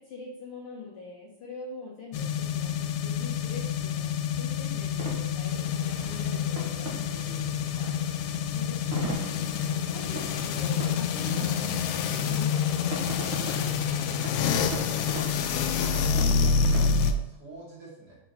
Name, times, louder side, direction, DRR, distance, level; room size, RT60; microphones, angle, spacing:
voice 1, 0.0-7.5 8.3-14.3 16.3-17.1, left 3 dB, 55° left, -4 dB, 1.8 m, -44 dB
sound 1, 2.1-17.1, left 6 dB, 85° left, 2.0 m, -28 dB
sound 2, 3.4-16.8, right 2 dB, 50° right, 2.2 m, -42 dB
voice 2, 7.7-8.0 14.4-18.2, right 1 dB, 35° right, -7 dB, 3.1 m, -47 dB
6.8 x 6.3 x 4.3 m, 0.80 s
omnidirectional pair, 3.3 m